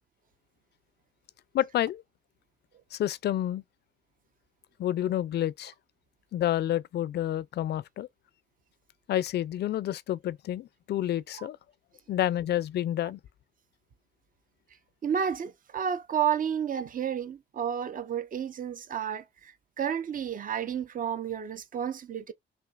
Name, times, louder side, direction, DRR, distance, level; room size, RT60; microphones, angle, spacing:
voice 1, 1.5-2.0 2.9-3.6 4.8-5.7 6.3-8.1 9.1-11.6 12.1-13.2, left 12 dB, 60° left, 0.4 m, -29 dB
voice 2, 15.0-22.3, right 8 dB, 45° right, 0.7 m, -31 dB
5.7 x 2.9 x 2.4 m
cardioid pair, 90°, 20 cm